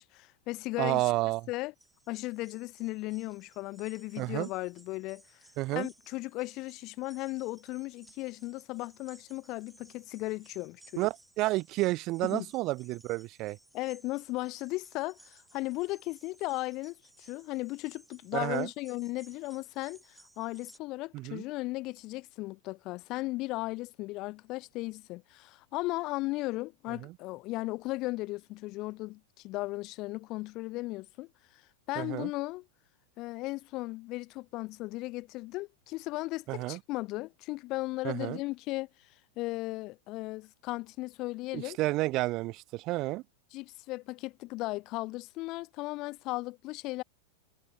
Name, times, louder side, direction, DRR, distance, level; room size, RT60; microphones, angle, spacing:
voice 1, 0.0-1.1 1.5-1.7 2.1-5.2 5.7-11.1 12.2-12.5 13.7-20.0 20.4-31.3 31.9-32.6 33.2-38.9 39.4-41.8 43.5-47.0, left 20 dB, 40° left, 0.8 m, -36 dB
voice 2, 0.8-1.5 4.2-4.5 5.6-5.9 11.0-13.6 18.3-18.7 21.1-21.4 27.0-27.1 32.0-32.3 36.5-36.8 38.0-38.4 41.5-43.2, right 19 dB, 40° right, 2.3 m, -31 dB
sound 1, 1.8-20.8, right 1 dB, 5° right, 7.9 m, -60 dB
figure-of-eight pair, 90°, 0 cm